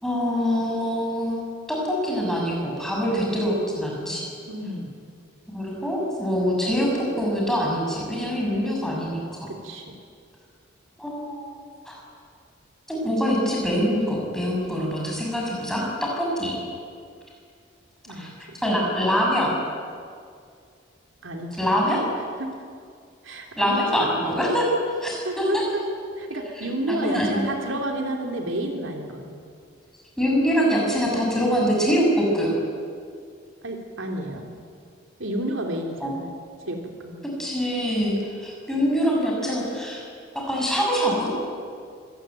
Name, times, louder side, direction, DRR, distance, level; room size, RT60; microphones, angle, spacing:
voice 1, 0.0-1.4 1.7-4.2 5.5-6.9 7.2-9.5 11.0-12.0 12.9-16.6 18.2-18.3 18.6-19.5 21.6-22.0 23.6-24.7 25.0-25.6 26.6-27.4 30.2-32.6 36.0-36.1 37.4-40.0 40.3-41.3, equal, ahead, -3 dB, 6.3 m, -24 dB
voice 2, 4.5-4.9 8.9-9.1 9.5-10.0 15.4-15.5 18.1-18.6 21.2-21.5 21.9-22.0 22.4-22.5 23.2-24.1 25.2-25.8 26.2-29.3 33.6-34.5 35.2-36.3 36.6-37.2, right 1 dB, 75° right, 2 dB, 3.1 m, -31 dB
24.5 x 18.5 x 9.2 m, 2.2 s
head